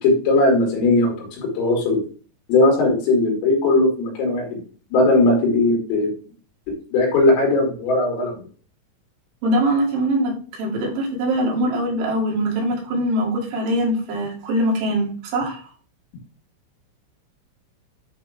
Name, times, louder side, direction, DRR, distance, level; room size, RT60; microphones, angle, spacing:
voice 1, 0.0-2.0 2.5-4.6 4.9-6.1 6.9-8.4, left 2 dB, 80° left, 0 dB, 5.0 m, -18 dB
voice 2, 9.4-15.6, right 1 dB, 70° right, -1 dB, 4.2 m, -22 dB
11.0 x 3.9 x 3.5 m, 0.40 s
omnidirectional pair, 5.9 m